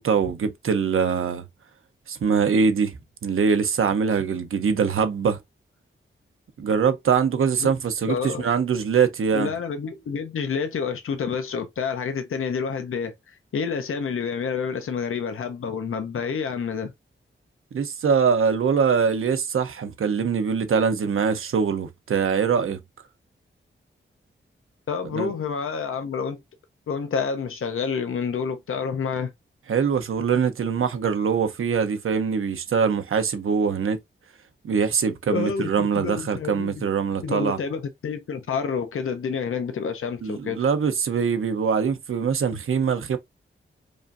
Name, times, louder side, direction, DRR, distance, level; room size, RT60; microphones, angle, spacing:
voice 1, 0.0-1.4 2.1-3.0 3.2-5.4 6.6-9.5 17.7-22.8 25.1-25.3 29.7-34.0 34.6-37.6 40.2-43.2, right 6 dB, 85° right, 0.7 m, -23 dB
voice 2, 8.1-8.5 9.3-16.9 24.9-26.4 26.9-29.3 35.3-36.7 37.2-40.6, left 6 dB, 85° left, 0.7 m, -28 dB
4.9 x 2.6 x 2.6 m
wide cardioid pair, 170°, 21 cm